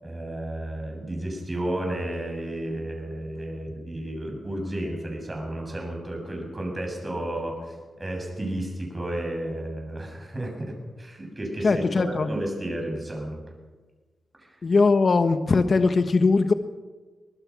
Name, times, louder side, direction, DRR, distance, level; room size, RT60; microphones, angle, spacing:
voice 1, 0.0-13.4 14.4-14.6, right 1 dB, 25° right, 1 dB, 7.4 m, -32 dB
voice 2, 11.6-12.3 14.6-16.5, left 4 dB, 50° left, 8 dB, 1.2 m, -20 dB
24.0 x 20.5 x 6.1 m, 1.3 s
cardioid pair, 90°, 0 cm